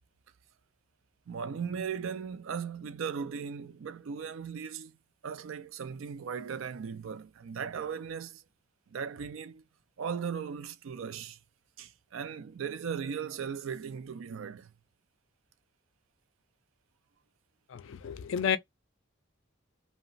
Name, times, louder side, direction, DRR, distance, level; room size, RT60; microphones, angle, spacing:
voice 1, 1.3-4.9 5.2-8.4 8.9-9.6 10.0-11.4 11.8-14.7, right 6 dB, 75° right, 0.4 m, -37 dB
voice 2, 17.7-18.6, left 8 dB, 65° left, 0.4 m, -31 dB
2.9 x 2.0 x 2.5 m
head